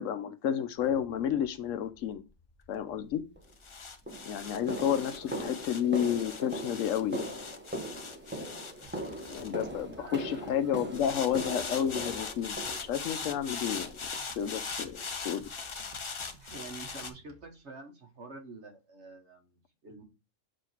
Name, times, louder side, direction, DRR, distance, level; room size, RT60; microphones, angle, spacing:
voice 1, 0.0-2.2 2.7-3.2 4.3-7.4 9.3-13.9 14.4-15.0 15.2-15.4, left 9 dB, 80° left, 1.0 m, -31 dB
sound 1, 0.8-10.2 10.9-17.1, left 5 dB, 45° left, 0.4 m, -41 dB
sound 2, 3.4-3.5 4.1-13.3 13.7-14.1 14.4-14.6 15.0-15.1 15.6-15.7 16.2-16.3, right 1 dB, 10° right, 0.8 m, -40 dB
voice 2, 4.9-5.4 10.0-11.1 16.4-20.0, right 3 dB, 60° right, 1.4 m, -48 dB
sound 3, 8.8-17.6, right 4 dB, 35° right, 1.0 m, -57 dB
7.6 x 2.8 x 4.4 m
omnidirectional pair, 1.3 m